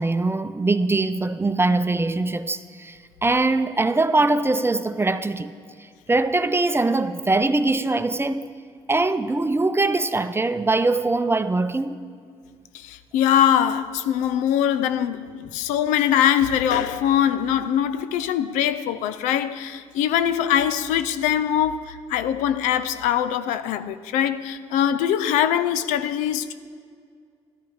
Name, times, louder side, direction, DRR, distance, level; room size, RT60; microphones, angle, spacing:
voice 1, 0.0-5.5 6.1-8.5 8.9-12.0, right 2 dB, 20° right, 0.6 m, -22 dB
voice 2, 12.7-26.5, left 10 dB, 80° left, 0.4 m, -22 dB
13.0 x 10.5 x 4.8 m
hypercardioid pair, 50°, 13 cm